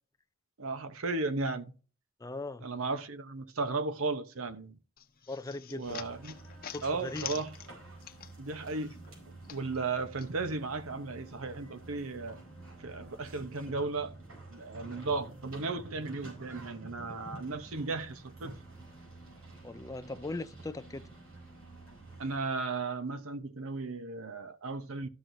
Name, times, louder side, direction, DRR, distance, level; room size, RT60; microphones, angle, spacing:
voice 1, 0.6-1.7 2.6-4.8 5.7-6.3 6.8-7.5 8.4-9.0 9.5-12.4 12.8-14.1 14.5-18.6 22.2-25.1, right 3 dB, 70° right, 0.9 m, -35 dB
voice 2, 2.2-2.7 5.3-6.0 6.7-7.3 19.6-21.0, left 2 dB, 15° left, 0.4 m, -39 dB
sound 1, 5.0-8.6 8.9-10.3, left 10 dB, 45° left, 0.8 m, -45 dB
sound 2, 5.8-22.4, right 2 dB, 90° right, 4.8 m, -49 dB
13.0 x 6.2 x 2.6 m
head